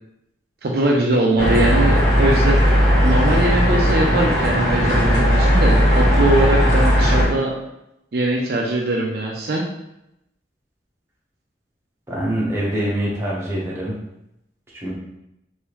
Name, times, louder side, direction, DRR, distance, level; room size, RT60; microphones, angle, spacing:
voice 1, 0.6-2.6 3.0-7.5 8.1-9.7, right 2 dB, 55° right, -1 dB, 0.4 m, -21 dB
sound 1, 1.4-7.3, equal, 50° left, 1.5 m, -16 dB
voice 2, 12.1-13.9 14.7-14.9, right 1 dB, 15° right, -6 dB, 0.9 m, -24 dB
3.4 x 2.6 x 3.0 m, 0.84 s
head